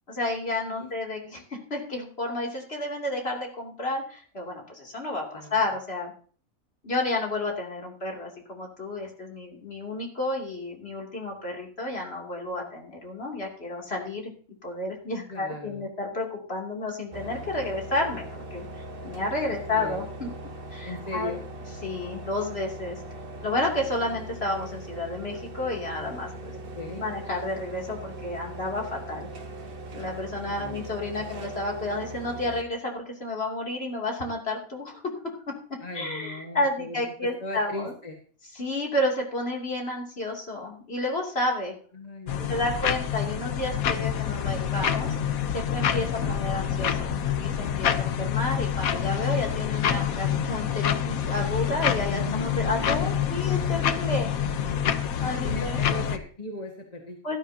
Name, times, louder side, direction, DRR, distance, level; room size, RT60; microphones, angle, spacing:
voice 1, 0.1-6.1 6.8-14.3 14.6-18.6 19.0-20.3 20.7-21.3 21.8-23.0 23.4-26.5 26.9-29.3 29.9-35.0 35.9-37.9 38.5-41.7 42.5-45.2 45.5-47.1 47.4-54.3 55.2-55.8 57.2-57.4, left 2 dB, 45° left, -1 dB, 3.1 m, -31 dB
voice 2, 15.3-15.9 19.5-20.0 20.8-21.4 26.7-27.1 30.4-30.8 35.8-37.0 37.2-38.2 41.9-43.0 46.0-46.5 52.1-53.4 55.4-57.2, left 1 dB, 30° left, 1 dB, 1.7 m, -38 dB
sound 1, 17.1-32.6, right 2 dB, 45° right, 1.3 m, -40 dB
sound 2, 42.3-56.2, left 9 dB, 85° left, 1.3 m, -27 dB
17.0 x 12.0 x 2.8 m, 0.43 s
omnidirectional pair, 1.4 m